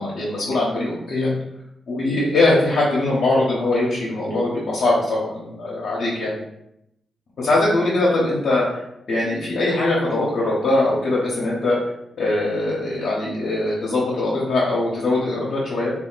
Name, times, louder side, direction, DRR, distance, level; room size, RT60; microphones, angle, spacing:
voice 1, 0.0-1.4 1.9-6.4 7.4-8.8 9.1-11.8 12.2-15.9, left 2 dB, 70° left, -6 dB, 0.8 m, -21 dB
2.3 x 2.1 x 3.8 m, 0.81 s
cardioid pair, 55°, 0 cm